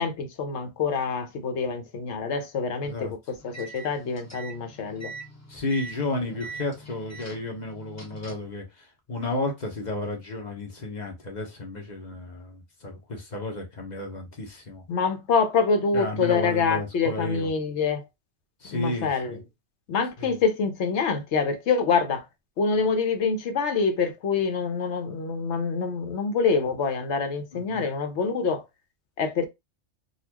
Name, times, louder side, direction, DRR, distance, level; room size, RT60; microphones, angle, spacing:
voice 1, 0.0-5.1 14.9-18.1 18.7-19.4 19.9-22.3 22.6-28.6 29.2-29.4, left 5 dB, 65° left, 1.0 m, -26 dB
sound 1, 3.4-8.6, right 3 dB, 15° left, 0.8 m, -43 dB
voice 2, 5.5-14.8 15.9-17.5 18.6-19.4 20.2-20.4 27.5-27.8, left 2 dB, 40° left, 1.0 m, -32 dB
4.1 x 2.4 x 2.8 m
omnidirectional pair, 1.3 m